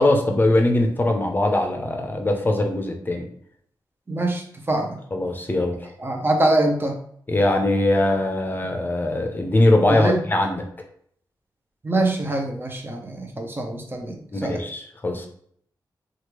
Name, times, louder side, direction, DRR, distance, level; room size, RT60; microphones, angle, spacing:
voice 1, 0.0-3.3 5.1-5.9 7.3-10.7 14.3-15.3, left 1 dB, 25° left, 3 dB, 0.6 m, -21 dB
voice 2, 4.1-5.0 6.0-7.0 9.9-10.2 11.8-14.6, right 2 dB, 25° right, 2 dB, 0.7 m, -24 dB
3.1 x 2.4 x 3.1 m, 0.64 s
cardioid pair, 75°, 8 cm